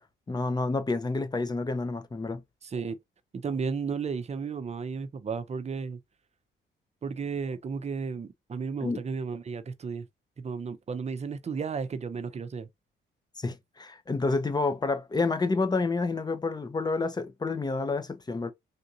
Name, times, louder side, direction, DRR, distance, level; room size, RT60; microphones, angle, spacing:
voice 1, 0.3-2.4 8.8-9.0 13.4-18.5, left 3 dB, 20° left, 0.7 m, -29 dB
voice 2, 2.6-3.0 3.3-6.0 7.0-10.1 10.4-12.7, right 5 dB, 35° right, 0.6 m, -33 dB
3.6 x 2.6 x 2.7 m
cardioid pair, 90°, 20 cm